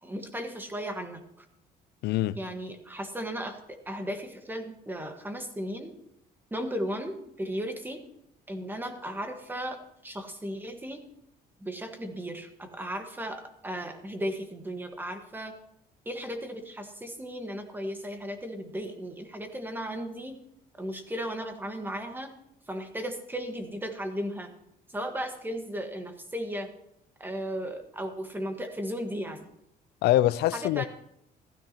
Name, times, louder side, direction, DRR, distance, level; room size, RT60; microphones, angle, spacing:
voice 1, 0.0-1.5 2.3-5.9 6.5-8.0 8.5-9.8 10.0-11.0 11.6-15.5 16.0-20.4 20.8-22.3 22.7-24.5 24.9-26.7 27.2-29.5 30.5-30.9, equal, 10° right, 1.5 m, -35 dB
voice 2, 2.0-2.4 30.0-30.8, left 14 dB, 75° left, 0.4 m, -24 dB
15.0 x 13.0 x 2.9 m
cardioid pair, 110°, 17 cm